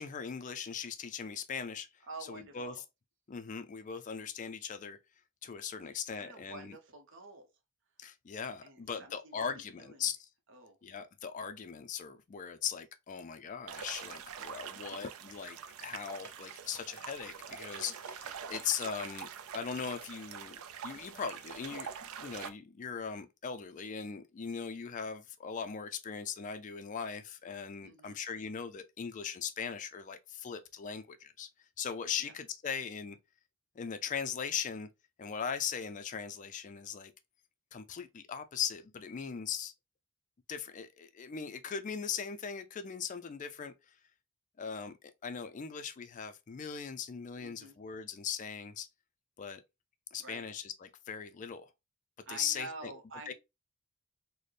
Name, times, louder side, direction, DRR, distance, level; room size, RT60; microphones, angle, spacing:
voice 1, 0.0-1.9 2.3-2.8 3.3-5.0 5.4-6.8 8.0-10.3 10.8-19.3 19.5-20.6 20.8-21.9 22.2-31.5 31.8-33.2 33.8-34.9 35.2-37.1 37.7-39.7 40.5-43.9 44.6-48.9 49.4-49.6 50.1-51.7 52.3-52.9 53.3-53.4, left 7 dB, 35° left, 0.3 m, -39 dB
voice 2, 2.1-2.6 5.8-7.5 8.6-9.3 9.8-10.0 10.5-10.8 27.8-28.2 32.2-32.3 47.4-47.7 50.2-50.4 52.3-53.3, right 3 dB, 60° right, 0.8 m, -48 dB
sound 1, 13.7-22.5, right 7 dB, 80° right, 0.4 m, -45 dB
4.0 x 2.1 x 3.2 m
head